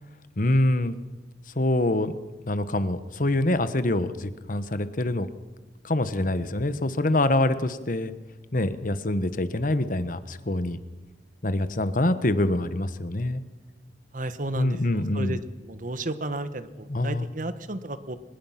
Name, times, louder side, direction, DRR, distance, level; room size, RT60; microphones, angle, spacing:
voice 1, 0.4-1.0 1.5-2.1 2.5-5.3 5.8-8.1 8.5-10.8 11.4-13.4 14.6-15.4 16.9-17.3, left 1 dB, 50° left, 12 dB, 1.2 m, -25 dB
voice 2, 14.1-18.2, right 2 dB, 50° right, 12 dB, 1.3 m, -33 dB
24.5 x 20.5 x 5.9 m, 1.2 s
head